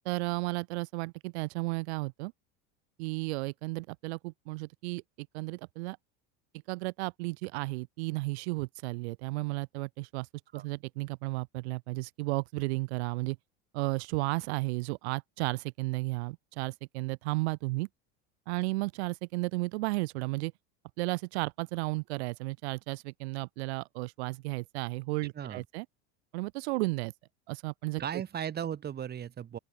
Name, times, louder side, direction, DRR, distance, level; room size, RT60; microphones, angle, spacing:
voice 1, 0.0-2.3 3.0-6.0 6.7-10.3 10.5-13.4 13.7-17.9 18.5-20.5 21.0-25.9 26.3-27.1 27.5-28.0, right 24 dB, 80° right, 2.4 m, -33 dB
voice 2, 28.0-29.6, right 9 dB, 30° right, 2.9 m, -36 dB
open air
supercardioid pair, 130°, 32 cm